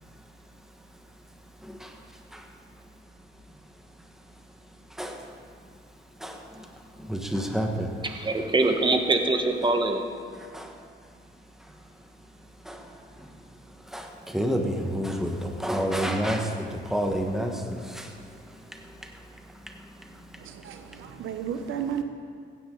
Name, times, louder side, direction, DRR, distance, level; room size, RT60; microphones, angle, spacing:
voice 1, 1.6-2.0 2.3-2.5 4.9-5.3 6.2-8.0 10.4-10.8 11.6-11.7 12.6-13.3 13.9-21.3, equal, ahead, 1.4 m, -31 dB
voice 2, 8.0-10.0, right 2 dB, 25° right, 1.4 m, -24 dB
voice 3, 20.4-22.0, right 8 dB, 80° right, 0.8 m, -33 dB
15.5 x 9.4 x 3.9 m
cardioid pair, 90°, 20 cm